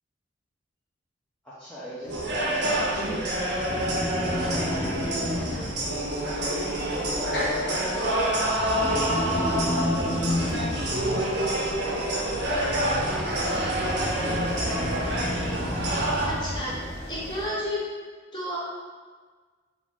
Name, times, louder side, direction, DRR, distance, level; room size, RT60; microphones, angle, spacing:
voice 1, 1.4-5.7 6.5-7.9 8.3-10.7 11.0-12.6 12.8-13.9, equal, 5° left, -12 dB, 0.5 m, -43 dB
sound 1, 2.0-17.5, left 1 dB, 55° left, 0.7 m, -32 dB
sound 2, 2.1-16.3, right 1 dB, 65° right, 0.6 m, -27 dB
voice 2, 16.3-16.7 17.1-17.8 18.3-18.6, left 1 dB, 25° left, -7 dB, 0.8 m, -31 dB
3.0 x 2.5 x 3.5 m, 1.4 s
head